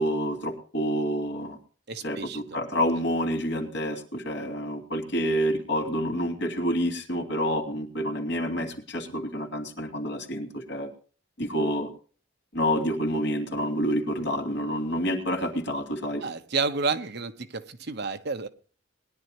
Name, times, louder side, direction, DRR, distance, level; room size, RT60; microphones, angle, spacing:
voice 1, 0.0-1.6 2.0-10.9 11.4-11.9 12.5-16.2, equal, 65° left, 2.8 m, -28 dB
voice 2, 1.9-2.6 16.2-18.5, right 4 dB, 60° right, 1.0 m, -30 dB
20.5 x 10.5 x 3.0 m
head